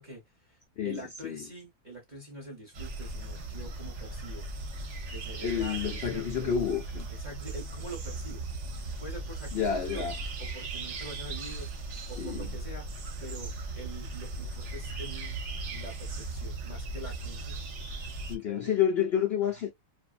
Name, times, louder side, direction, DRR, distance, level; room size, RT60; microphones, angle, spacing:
voice 1, 0.0-0.6 0.8-4.5 5.1-6.5 7.1-10.0 10.4-12.9 13.2-13.5 13.8-15.4 15.7-17.6 18.4-18.7, right 2 dB, 35° right, 0.9 m, -45 dB
voice 2, 0.8-1.4 5.4-7.1 9.5-10.2 12.2-12.5 18.3-19.7, left 8 dB, 90° left, 0.5 m, -29 dB
sound 1, 2.7-18.4, right 2 dB, 55° right, 0.9 m, -38 dB
2.7 x 2.5 x 2.4 m
omnidirectional pair, 1.7 m